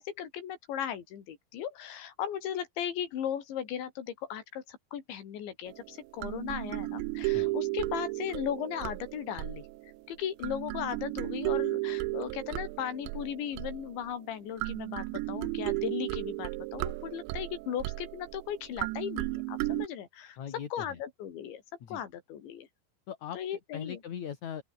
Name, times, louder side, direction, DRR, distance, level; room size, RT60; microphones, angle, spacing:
voice 1, 0.0-9.7 10.1-20.4 20.7-21.6 21.9-22.7 23.4-24.0, left 9 dB, 70° left, 5.5 m, -37 dB
sound 1, 5.7-10.0 10.4-14.1 14.6-19.9, right 22 dB, 85° right, 2.7 m, -34 dB
voice 2, 20.4-21.0 21.8-22.0 23.1-23.4 23.7-24.6, left 8 dB, 45° left, 2.9 m, -40 dB
open air
omnidirectional pair, 5.4 m